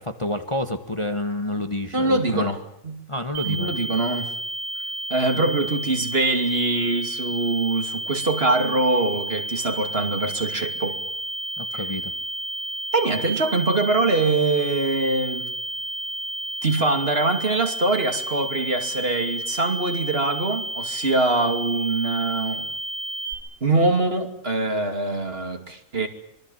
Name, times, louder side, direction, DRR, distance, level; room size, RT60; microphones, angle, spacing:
voice 1, 0.0-2.5 3.1-3.7 11.6-12.1, left 1 dB, 20° left, 7 dB, 1.5 m, -28 dB
voice 2, 1.9-2.6 2.8-3.0 3.4-4.3 5.1-11.0 11.7-11.8 12.9-15.5 16.6-22.7 23.6-26.1, right 3 dB, 45° right, 5 dB, 2.9 m, -23 dB
sound 1, 3.3-23.3, right 1 dB, 80° right, 5.1 m, -31 dB
26.0 x 23.5 x 7.3 m, 0.75 s
omnidirectional pair, 1.4 m